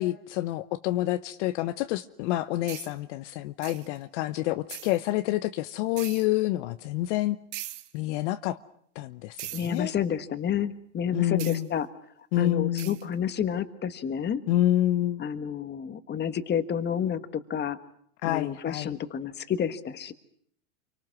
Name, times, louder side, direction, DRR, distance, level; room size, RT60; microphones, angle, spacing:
voice 1, 0.0-7.4 7.9-8.6 8.9-9.9 11.1-11.7 12.3-13.0 14.5-15.2 18.2-18.9, left 14 dB, 55° left, 11 dB, 1.0 m, -28 dB
sound 1, 2.7-2.9 3.6-4.0 4.7-5.1 6.0-6.3 7.5-7.9 9.4-9.8 11.4-11.6 12.8-13.0, right 15 dB, 60° right, 2.0 m, -40 dB
voice 2, 9.5-11.9 12.4-14.4 15.2-17.8 18.2-20.1, left 8 dB, 25° left, 10 dB, 1.7 m, -30 dB
29.5 x 24.5 x 6.2 m, 0.65 s
hypercardioid pair, 115°, 41 cm